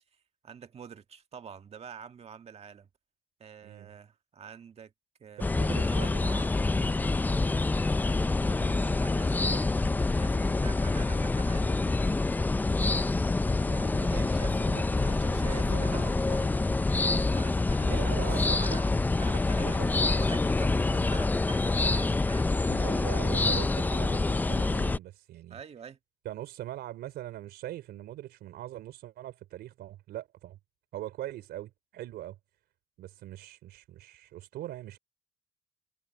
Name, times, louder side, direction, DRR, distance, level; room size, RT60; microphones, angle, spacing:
voice 1, 0.4-2.9 3.4-4.9 5.2-6.5 8.4-12.3 14.1-16.5 17.3-18.9 19.2-22.5 25.5-26.0, right 7 dB, 35° right, 1.7 m, -47 dB
sound 1, 5.4-25.0, left 3 dB, 10° left, 0.4 m, -26 dB
voice 2, 5.4-6.5 13.6-16.0 16.4-16.5 17.9-18.8 19.6-19.9 22.6-25.6 26.2-30.6 30.9-32.4 33.0-35.0, right 13 dB, 75° right, 3.8 m, -41 dB
cardioid pair, 110°, 17 cm